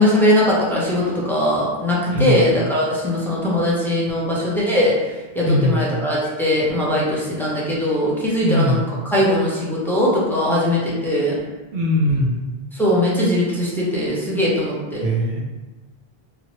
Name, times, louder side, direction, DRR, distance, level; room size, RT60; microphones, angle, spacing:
voice 1, 0.0-11.4 12.7-15.0, left 1 dB, 5° left, -6 dB, 0.4 m, -20 dB
voice 2, 2.1-2.4 5.4-5.9 8.4-8.8 11.7-12.4 15.0-15.4, left 1 dB, 60° right, -2 dB, 0.6 m, -20 dB
3.0 x 2.0 x 2.8 m, 1.2 s
omnidirectional pair, 1.0 m